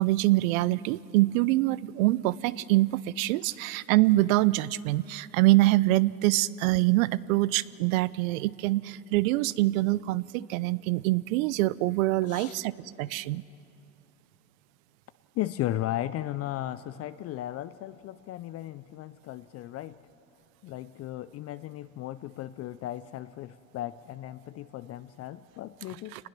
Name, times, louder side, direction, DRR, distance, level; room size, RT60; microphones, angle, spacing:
voice 1, 0.0-12.7 13.0-13.4 26.1-26.2, right 18 dB, 65° right, 19 dB, 0.6 m, -25 dB
voice 2, 12.2-12.6 15.3-20.0 20.6-26.3, left 14 dB, 35° left, 14 dB, 0.5 m, -36 dB
26.0 x 20.0 x 6.0 m, 2.6 s
hypercardioid pair, 100°, 44 cm